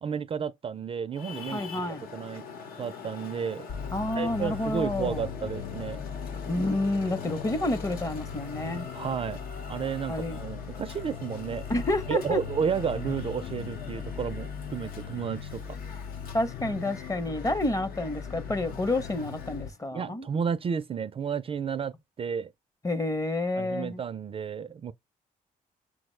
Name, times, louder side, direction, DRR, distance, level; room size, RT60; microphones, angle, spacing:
voice 1, 0.0-1.6 2.1-2.5 2.8-3.7 4.2-6.0 8.9-9.4 9.7-11.6 12.1-15.6 19.9-22.5 23.6-24.9, right 7 dB, 35° right, 0.3 m, -32 dB
Traffic noise roadway noise, 1.1-19.8, left 5 dB, 80° left, 1.0 m, -44 dB
voice 2, 1.5-2.0 3.9-5.3 6.5-8.9 10.1-10.4 11.7-12.4 16.3-20.3 22.8-24.0, left 2 dB, 20° left, 0.7 m, -29 dB
sound 1, 3.7-19.7, left 7 dB, 55° left, 0.4 m, -39 dB
5.9 x 2.1 x 3.1 m
cardioid pair, 80°, 15 cm